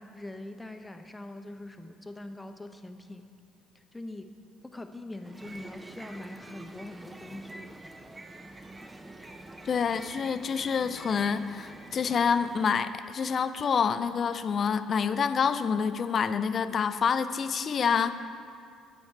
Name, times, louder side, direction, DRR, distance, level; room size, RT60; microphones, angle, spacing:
voice 1, 0.0-3.3 3.7-4.3 4.6-7.8, left 1 dB, 10° left, 6 dB, 0.8 m, -43 dB
sound 1, 5.2-12.8, right 2 dB, 20° right, 0.6 m, -47 dB
voice 2, 9.7-18.1, left 6 dB, 50° left, 12 dB, 0.5 m, -27 dB
9.7 x 8.5 x 4.6 m, 2.3 s
supercardioid pair, 75°, 0 cm